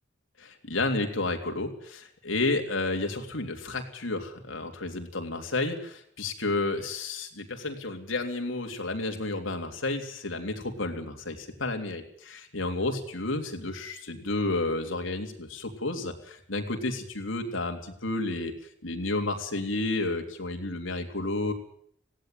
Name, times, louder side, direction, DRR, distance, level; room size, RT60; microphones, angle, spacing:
voice 1, 0.4-18.5 18.8-21.5, left 2 dB, 90° left, 4 dB, 3.3 m, -31 dB
18.0 x 16.5 x 9.3 m, 0.66 s
head